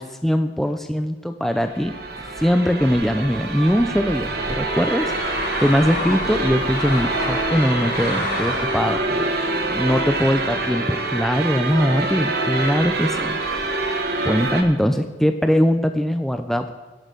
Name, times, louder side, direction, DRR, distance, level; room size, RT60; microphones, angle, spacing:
voice 1, 0.0-1.9 2.4-9.4 9.7-13.4 14.2-16.7, equal, ahead, 7 dB, 0.4 m, -21 dB
sound 1, 1.5-14.6, right 2 dB, 55° right, 1.2 m, -26 dB
sound 2, 2.0-9.1, left 2 dB, 60° left, 1.9 m, -32 dB
17.5 x 6.3 x 5.2 m, 1.2 s
head